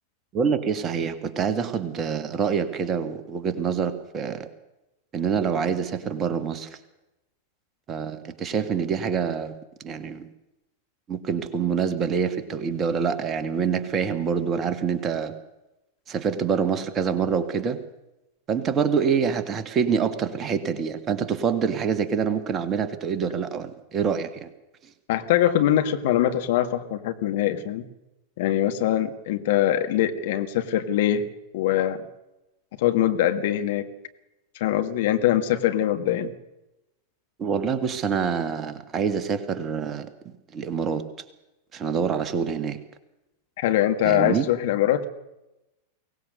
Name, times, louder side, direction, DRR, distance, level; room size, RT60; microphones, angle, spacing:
voice 1, 0.3-4.5 5.1-6.7 7.9-9.6 9.8-10.3 11.1-15.3 16.1-17.8 18.5-24.5 37.4-41.0 41.7-42.8 44.0-44.5, right 6 dB, 25° right, 10 dB, 1.9 m, -26 dB
voice 2, 25.1-27.8 28.4-32.0 32.8-33.9 34.5-36.3 43.6-45.1, left 12 dB, 55° left, 8 dB, 1.7 m, -23 dB
23.0 x 18.5 x 6.6 m, 0.94 s
figure-of-eight pair, 90°, 0 cm